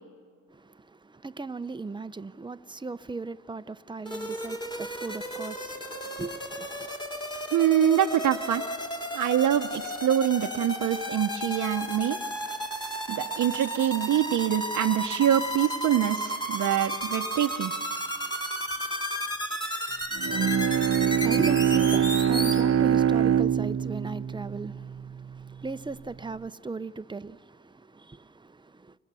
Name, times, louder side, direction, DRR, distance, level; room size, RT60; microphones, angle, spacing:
voice 1, 0.5-6.9 20.9-29.0, right 3 dB, 15° right, 0.7 m, -37 dB
sound 1, 4.1-22.6, equal, 15° left, 3.3 m, -33 dB
voice 2, 7.5-8.6 9.1-12.2 13.1-17.7, right 10 dB, 85° right, 0.9 m, -25 dB
Bowed string instrument, 20.2-25.5, right 9 dB, 50° right, 0.9 m, -24 dB
29.5 x 24.0 x 6.9 m
cardioid pair, 75°, 30 cm